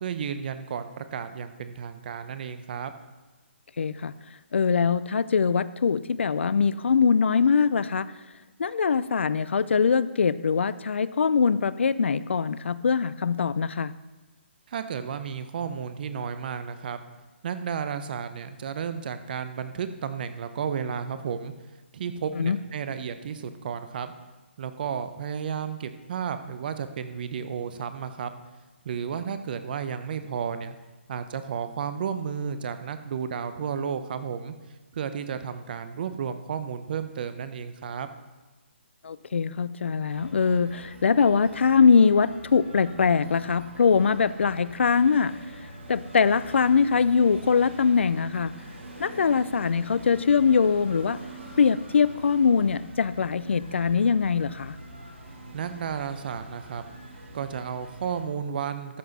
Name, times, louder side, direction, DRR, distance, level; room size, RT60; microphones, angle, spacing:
voice 1, 0.0-2.9 14.7-17.0 17.4-21.5 21.9-24.1 24.6-28.3 28.8-30.7 31.1-34.5 34.9-38.1 55.5-56.8 57.3-59.0, right 7 dB, 50° right, 10 dB, 0.8 m, -32 dB
voice 2, 3.8-4.1 4.5-8.1 8.6-13.9 22.4-22.6 39.0-45.3 45.9-48.5 49.0-51.2 51.6-54.8, left 6 dB, 70° left, 16 dB, 0.4 m, -22 dB
sound 1, 40.1-58.2, right 1 dB, 85° right, 2.4 m, -44 dB
13.0 x 7.8 x 4.1 m, 1.2 s
figure-of-eight pair, 145°, 6 cm